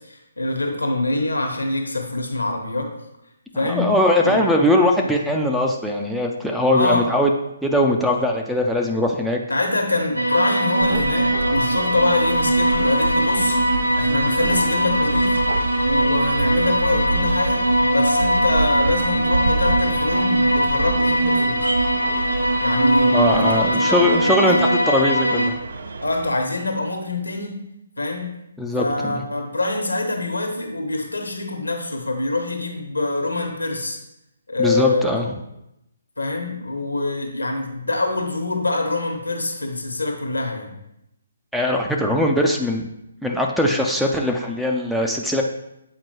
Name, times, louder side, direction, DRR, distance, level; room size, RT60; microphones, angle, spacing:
voice 1, 0.0-2.9 3.5-3.9 4.2-4.4 6.7-7.0 9.5-13.6 13.9-15.4 15.8-21.7 22.6-23.5 23.9-24.6 26.0-27.6 28.0-28.4 28.7-34.0 34.5-35.1 36.2-40.8, left 2 dB, 80° left, 3 dB, 1.1 m, -25 dB
voice 2, 3.6-7.3 7.6-9.4 23.1-25.5 28.6-29.2 34.6-35.2 41.5-42.9 43.2-45.4, left 1 dB, ahead, 0 dB, 0.4 m, -20 dB
sound 1, 10.2-25.5, right 1 dB, 90° right, 0.8 m, -20 dB
sound 2, 10.8-26.3, right 2 dB, 60° right, 0.5 m, -29 dB
7.7 x 4.4 x 2.9 m, 0.84 s
figure-of-eight pair, 135°, 0 cm